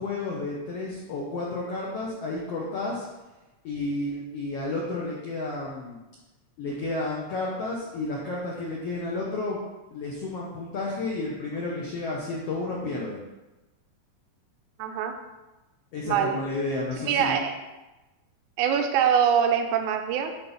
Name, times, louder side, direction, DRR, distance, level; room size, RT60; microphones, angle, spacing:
voice 1, 0.0-3.1 3.6-6.0 6.6-9.6 9.9-13.2 15.9-17.4, left 2 dB, 85° left, -3 dB, 1.3 m, -31 dB
voice 2, 14.8-15.2 16.0-16.4 17.0-17.6 18.6-20.3, right 8 dB, 80° right, 5 dB, 1.8 m, -23 dB
8.2 x 3.6 x 5.4 m, 1.1 s
omnidirectional pair, 4.1 m